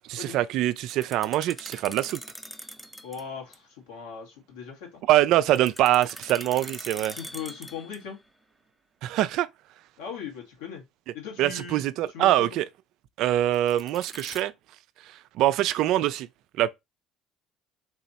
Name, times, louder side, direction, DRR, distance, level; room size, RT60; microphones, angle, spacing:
voice 1, 0.1-2.2 5.1-7.2 9.0-9.5 11.4-12.7 13.2-14.5 15.4-16.3 16.6-16.7, right 13 dB, 65° right, 0.3 m, -24 dB
sound 1, 0.8-3.3 3.5-3.6 5.6-8.2 13.5-14.4, equal, ahead, 0.6 m, -42 dB
voice 2, 3.0-5.0 7.1-8.2 10.0-10.8 11.1-12.6, left 6 dB, 80° left, 1.3 m, -39 dB
4.0 x 2.9 x 2.7 m
hypercardioid pair, 60°, 0 cm